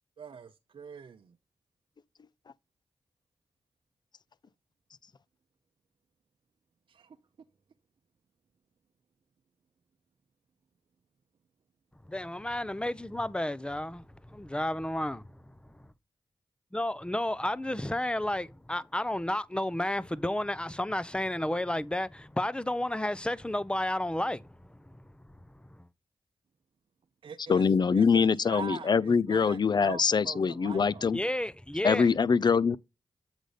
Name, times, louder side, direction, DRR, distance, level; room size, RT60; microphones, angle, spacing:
voice 1, 0.2-1.3 6.9-7.2 27.2-27.6 27.9-31.1, right 6 dB, 65° right, 0.7 m, -43 dB
voice 2, 12.1-14.0 14.3-15.2 16.7-24.6 31.1-32.1, left 1 dB, 10° left, 0.7 m, -31 dB
voice 3, 27.5-31.2 31.8-32.8, left 5 dB, 50° left, 0.5 m, -24 dB
8.0 x 3.9 x 5.0 m
cardioid pair, 40°, 9 cm